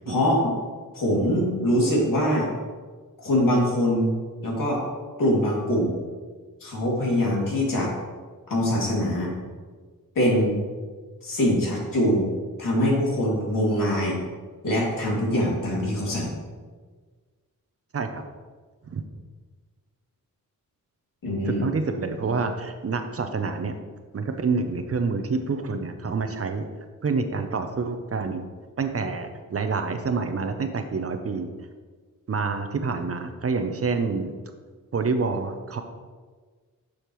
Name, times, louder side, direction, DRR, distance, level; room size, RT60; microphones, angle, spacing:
voice 1, 0.1-0.6 0.9-2.5 3.2-4.1 4.4-4.8 5.2-6.0 6.6-7.9 8.5-9.3 10.2-10.6 11.2-12.3 12.6-14.2 14.6-16.3 21.2-21.7, equal, 75° left, -3 dB, 2.5 m, -23 dB
voice 2, 21.4-23.7 24.1-26.6 27.0-28.5 28.8-31.5 32.3-34.3 34.9-35.8, right 4 dB, 45° right, 7 dB, 0.6 m, -27 dB
10.0 x 6.4 x 3.1 m, 1.5 s
wide cardioid pair, 135°, 34 cm